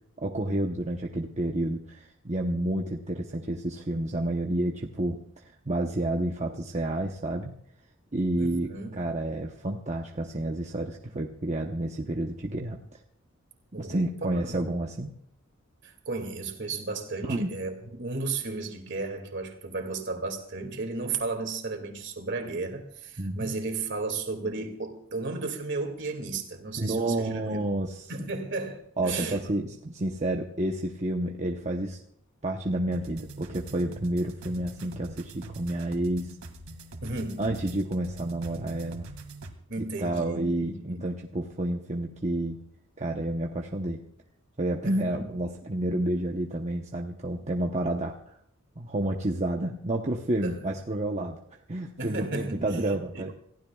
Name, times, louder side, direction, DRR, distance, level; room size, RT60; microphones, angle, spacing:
voice 1, 0.2-7.5 8.1-12.8 13.8-15.1 17.2-17.5 23.2-23.6 26.8-28.1 29.0-32.0 32.4-36.3 37.4-39.1 39.8-42.6 43.0-44.0 44.6-48.3 48.8-51.4 51.7-53.3, right 1 dB, 35° right, 1 dB, 0.9 m, -30 dB
voice 2, 8.4-9.0 13.7-14.6 15.8-27.2 27.4-27.6 28.1-29.4 37.0-37.4 39.7-41.0 44.8-45.2 50.4-50.7 52.0-52.6 53.1-53.3, right 3 dB, 55° right, 4 dB, 2.4 m, -34 dB
sound 1, 32.9-39.5, right 2 dB, 80° right, 2.2 m, -43 dB
28.0 x 15.5 x 2.4 m, 0.67 s
head